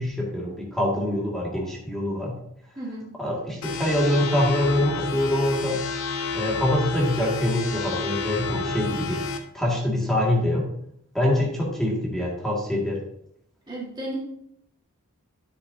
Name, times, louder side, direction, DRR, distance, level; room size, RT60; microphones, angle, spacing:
voice 1, 0.0-2.4 3.2-5.8 6.3-9.2 9.5-10.7 11.1-13.0, left 1 dB, ahead, -4 dB, 2.1 m, -24 dB
voice 2, 2.8-3.1 13.7-14.2, right 1 dB, 20° right, -4 dB, 1.8 m, -33 dB
sound 1, 3.6-9.4, left 4 dB, 80° left, 1.0 m, -30 dB
11.5 x 6.7 x 2.8 m, 0.73 s
head